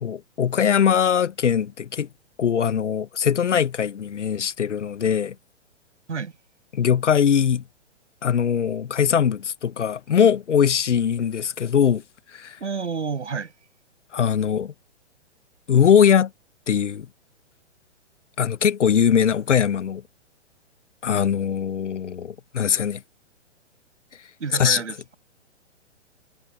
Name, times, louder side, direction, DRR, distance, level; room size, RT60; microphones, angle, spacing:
voice 1, 0.0-2.1 2.4-5.3 6.7-7.6 8.2-12.0 12.3-12.6 14.1-14.7 15.7-16.3 16.7-17.1 18.4-20.0 21.0-23.0 24.6-24.8, left 8 dB, 75° left, 0.9 m, -21 dB
voice 2, 12.6-13.5 24.4-25.1, right 5 dB, 75° right, 7.9 m, -29 dB
figure-of-eight pair, 125°, 36 cm